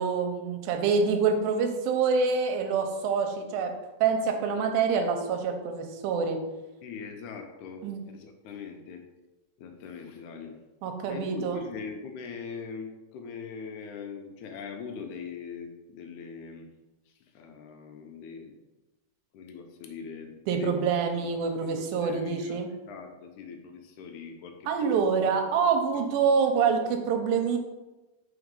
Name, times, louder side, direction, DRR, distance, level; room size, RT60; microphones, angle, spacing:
voice 1, 0.0-3.7 4.0-6.4 7.8-8.0 10.8-11.6 20.5-22.7 24.7-27.6, right 5 dB, 90° right, 4 dB, 2.4 m, -26 dB
voice 2, 6.8-9.0 9.6-10.6 11.1-16.7 17.3-18.5 19.3-20.8 21.6-22.6 22.9-25.0 25.9-26.0, left 6 dB, 85° left, 4 dB, 1.7 m, -41 dB
4.8 x 4.0 x 5.1 m, 1.1 s
omnidirectional pair, 4.1 m